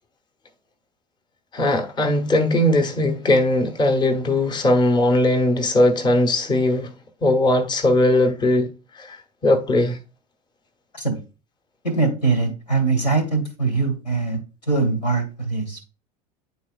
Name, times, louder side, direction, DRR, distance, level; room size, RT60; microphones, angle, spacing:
voice 1, 1.5-6.9 7.2-10.0, left 1 dB, 20° left, 1.0 m, -19 dB
voice 2, 11.8-15.9, right 3 dB, 85° left, 2.1 m, -22 dB
9.6 x 4.0 x 2.4 m
figure-of-eight pair, 75°, 21 cm